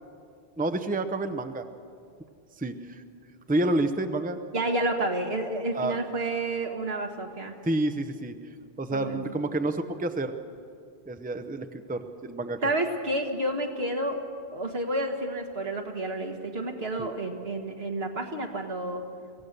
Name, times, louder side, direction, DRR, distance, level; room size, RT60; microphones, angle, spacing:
voice 1, 0.6-1.6 2.6-3.0 3.5-4.4 5.7-6.0 7.6-8.3 8.8-10.3 11.1-12.6 17.0-17.1, right 2 dB, 10° right, 8 dB, 0.7 m, -29 dB
voice 2, 4.5-7.5 8.9-9.4 12.6-14.2 14.5-19.0, right 1 dB, 75° right, 3 dB, 2.0 m, -30 dB
24.0 x 16.0 x 6.7 m, 2.3 s
omnidirectional pair, 1.0 m